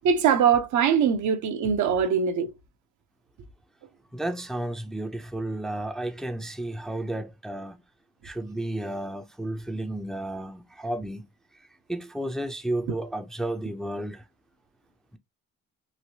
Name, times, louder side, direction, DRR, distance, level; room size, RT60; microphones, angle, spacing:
voice 1, 0.0-2.5, right 7 dB, 75° right, 0.6 m, -22 dB
voice 2, 4.1-7.8 8.2-11.3 11.9-14.2, right 1 dB, ahead, 0.4 m, -32 dB
3.1 x 2.6 x 2.7 m
cardioid pair, 90°, 30 cm